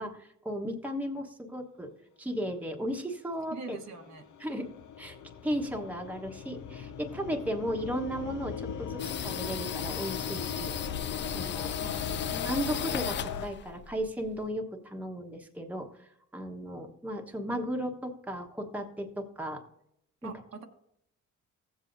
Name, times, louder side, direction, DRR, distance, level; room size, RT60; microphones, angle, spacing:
voice 1, 0.0-1.9 2.2-3.8 4.4-4.7 5.0-5.2 5.4-10.7 11.3-11.7 12.3-19.6 20.2-20.3, equal, 5° right, 2 dB, 1.2 m, -35 dB
voice 2, 3.5-4.2 11.8-12.6 20.2-20.6, right 4 dB, 65° right, 3 dB, 1.3 m, -44 dB
sound 1, 3.8-13.5, left 7 dB, 75° left, 0.8 m, -38 dB
sound 2, 9.0-14.5, left 9 dB, 40° left, 0.4 m, -37 dB
15.5 x 7.7 x 2.6 m, 0.75 s
cardioid pair, 90°, 30 cm